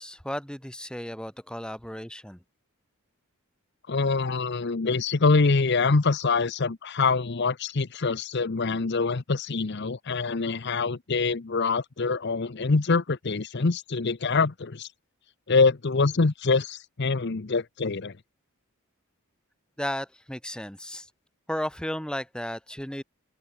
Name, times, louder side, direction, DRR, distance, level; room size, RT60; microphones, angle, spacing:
voice 1, 0.0-2.4 19.8-21.1 21.5-23.0, equal, 5° left, 2.1 m, -34 dB
voice 2, 3.9-14.9 15.5-18.1, left 4 dB, 50° left, 0.7 m, -25 dB
open air
head